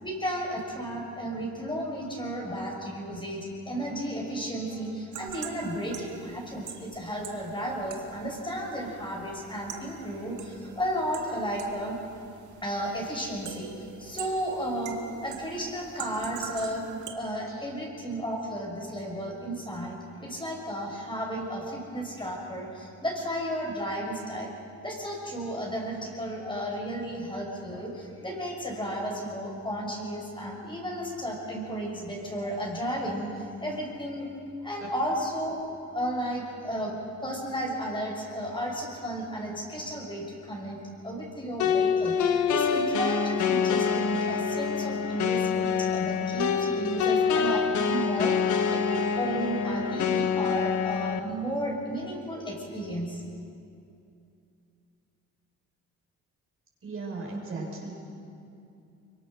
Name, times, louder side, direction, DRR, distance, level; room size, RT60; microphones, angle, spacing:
voice 1, 0.0-12.0 12.6-24.5 24.8-34.3 34.6-35.6 35.9-37.0 37.2-53.2, equal, 15° left, -1 dB, 5.9 m, -33 dB
sound 1, 5.1-17.1, right 8 dB, 80° right, 2.2 m, -44 dB
sound 2, 41.6-51.2, left 6 dB, 75° left, 1.4 m, -26 dB
voice 2, 56.8-57.9, right 3 dB, 45° right, -2 dB, 6.6 m, -36 dB
24.0 x 24.0 x 6.5 m, 2.6 s
cardioid pair, 90°, 30 cm